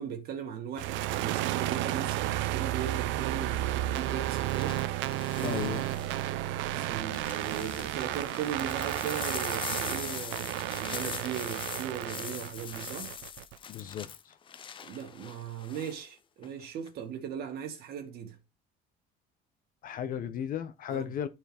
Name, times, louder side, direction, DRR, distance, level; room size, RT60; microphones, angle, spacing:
voice 1, 0.0-4.8 5.3-5.6 6.6-13.1 14.8-18.4 20.9-21.0, right 8 dB, 55° right, 2.2 m, -38 dB
sound 1, 0.8-13.6, right 14 dB, 80° right, 0.6 m, -32 dB
sound 2, 2.7-3.0 4.3-6.2 6.8-16.1 16.4-16.9, left 7 dB, 25° left, 0.5 m, -42 dB
voice 2, 5.4-5.9 13.7-14.4 19.8-21.3, left 9 dB, 45° left, 0.9 m, -35 dB
11.5 x 4.6 x 3.6 m
cardioid pair, 165°, 19 cm